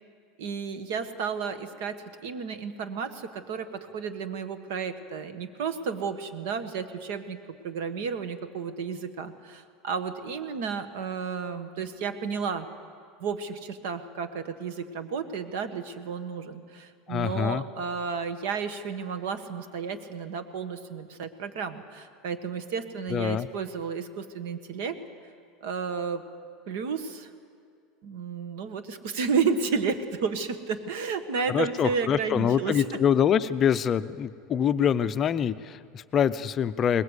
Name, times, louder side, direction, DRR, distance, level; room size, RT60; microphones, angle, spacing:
voice 1, 0.4-7.4 7.6-12.7 13.2-25.0 25.6-26.2 26.7-27.3 28.0-33.0, right 5 dB, 70° right, 10 dB, 1.6 m, -32 dB
voice 2, 17.1-17.6 23.1-23.5 31.5-37.0, left 8 dB, 25° left, 12 dB, 0.5 m, -25 dB
21.5 x 20.5 x 8.3 m, 2.2 s
supercardioid pair, 165°, 0 cm